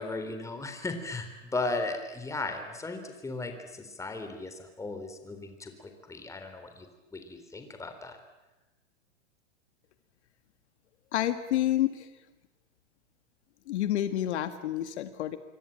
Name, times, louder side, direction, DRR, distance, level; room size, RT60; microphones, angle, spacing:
voice 1, 0.0-6.9 7.1-8.2, left 3 dB, 10° left, 7 dB, 3.6 m, -36 dB
voice 2, 11.1-12.1 13.7-15.4, left 12 dB, 60° left, 10 dB, 2.0 m, -29 dB
27.0 x 23.5 x 9.0 m, 1.1 s
hypercardioid pair, 135°, 37 cm